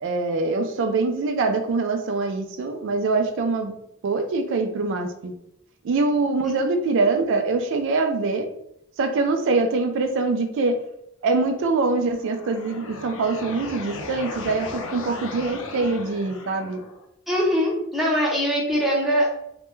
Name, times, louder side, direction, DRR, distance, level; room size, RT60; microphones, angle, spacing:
voice 1, 0.0-3.7 4.0-5.3 5.8-8.5 9.0-10.8 11.2-16.8, right 3 dB, 60° right, 7 dB, 0.3 m, -24 dB
sound 1, 12.1-17.1, left 3 dB, 65° left, 0.4 m, -36 dB
voice 2, 17.3-19.3, equal, ahead, -4 dB, 0.6 m, -22 dB
2.2 x 2.1 x 3.0 m, 0.79 s
head